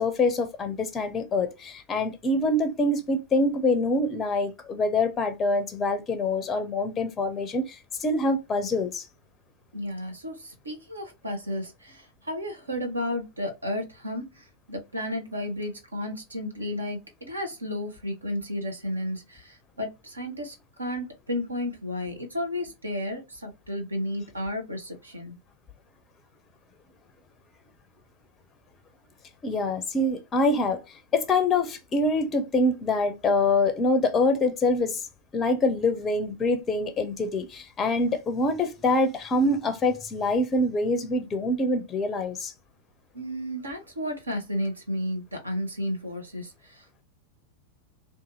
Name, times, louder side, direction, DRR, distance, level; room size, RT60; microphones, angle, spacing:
voice 1, 0.0-9.1 29.4-30.8 31.1-35.0 35.3-42.5, left 2 dB, 25° left, 0.4 m, -25 dB
voice 2, 9.7-25.4 43.1-47.0, left 1 dB, 80° right, 0.8 m, -33 dB
2.6 x 2.4 x 2.5 m
figure-of-eight pair, 90°, 0 cm